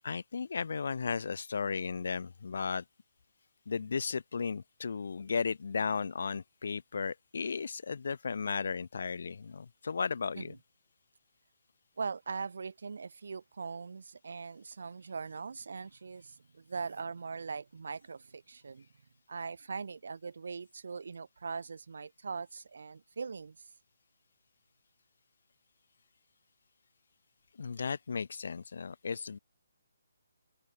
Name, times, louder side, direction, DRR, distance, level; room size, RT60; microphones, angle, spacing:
voice 1, 0.0-2.8 3.7-10.5 27.6-29.4, left 5 dB, 55° left, 0.7 m, -35 dB
voice 2, 12.0-18.9 19.3-23.6, right 5 dB, 60° right, 1.4 m, -41 dB
hypercardioid pair, 175°, 0 cm